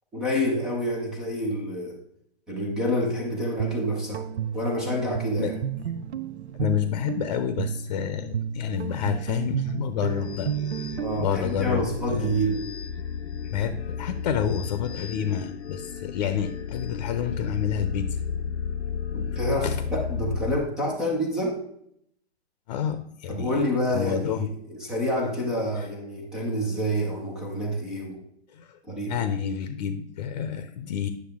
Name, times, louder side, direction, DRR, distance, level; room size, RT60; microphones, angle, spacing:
voice 1, 0.1-2.0 2.5-4.2 4.5-5.6 11.0-12.6 19.1-21.6 23.3-28.2 28.8-29.2, equal, ahead, -2 dB, 0.3 m, -28 dB
Guitar, 3.3-11.3, right 8 dB, 90° right, 0.6 m, -32 dB
voice 2, 6.5-12.3 13.5-18.2 19.6-19.8 22.7-23.6 23.9-24.5 25.8-25.9 26.3-26.4 28.5-28.8 29.1-31.1, left 8 dB, 40° left, 10 dB, 0.7 m, -29 dB
sound 1, 10.0-20.6, left 7 dB, 85° left, 0.8 m, -33 dB
9.6 x 6.6 x 3.5 m, 0.71 s
hypercardioid pair, 150°, 32 cm